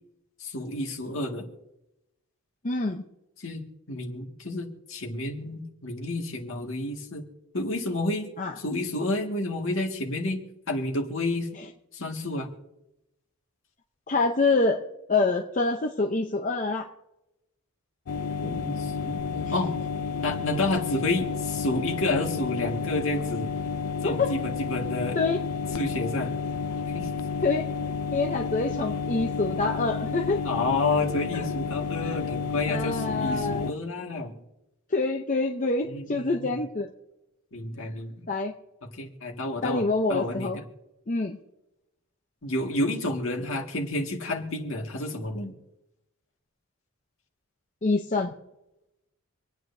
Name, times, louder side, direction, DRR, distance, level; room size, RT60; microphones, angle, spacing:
voice 1, 0.4-1.4 3.4-7.3 7.5-8.3 8.6-10.4 10.7-11.5 11.9-12.5 18.4-19.7 20.2-23.5 24.0-25.2 25.7-26.3 26.9-27.2 30.4-34.3 35.8-36.6 37.5-38.3 39.0-39.8 40.1-40.6 42.4-45.5, left 2 dB, 60° left, 1 dB, 2.0 m, -30 dB
voice 2, 2.6-3.0 8.4-8.5 11.5-11.7 14.1-14.8 15.1-16.9 24.0-24.3 25.1-25.4 27.4-27.7 28.1-30.4 31.3-31.5 32.0-32.2 32.7-33.7 34.9-36.9 38.3-38.5 39.6-40.6 41.1-41.4 47.8-48.3, left 3 dB, 35° left, 2 dB, 0.7 m, -26 dB
sound 1, 18.1-33.7, left 5 dB, 80° left, 0.5 m, -31 dB
26.5 x 9.3 x 2.7 m, 0.91 s
head